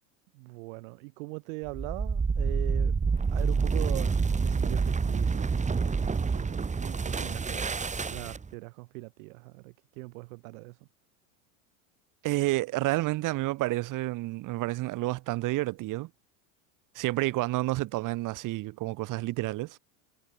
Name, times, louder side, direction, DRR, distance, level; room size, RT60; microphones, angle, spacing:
voice 1, 0.3-2.9 3.3-7.7 8.1-10.8, right 28 dB, 70° right, 6.7 m, -41 dB
sound 1, 1.7-8.5, right 5 dB, 15° right, 3.9 m, -28 dB
voice 2, 12.2-16.1 17.0-19.8, right 18 dB, 50° right, 1.8 m, -30 dB
supercardioid pair, 115°, 41 cm